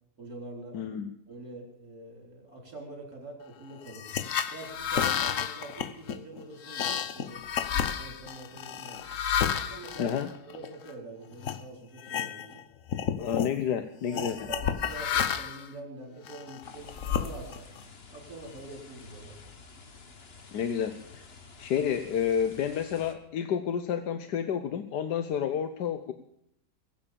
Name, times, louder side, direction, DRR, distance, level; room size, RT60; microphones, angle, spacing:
voice 1, 0.2-0.8 1.3-4.1 4.5-7.4 7.7-9.1 9.5-10.2 10.5-12.7 13.7-17.7 18.1-19.4, right 2 dB, 50° right, 2 dB, 5.0 m, -45 dB
voice 2, 0.7-1.1 10.0-10.3 13.2-14.4 20.5-21.2 21.6-26.1, left 8 dB, 70° left, 9 dB, 1.5 m, -30 dB
sound 1, 3.9-10.9 11.4-11.6 12.0-12.6 12.9-13.5 14.1-15.7 16.3-17.8, left 8 dB, 55° left, 1.1 m, -31 dB
sound 2, 16.6-23.1, left 4 dB, 35° left, 1.6 m, -51 dB
22.0 x 8.8 x 6.9 m, 0.72 s
omnidirectional pair, 1.9 m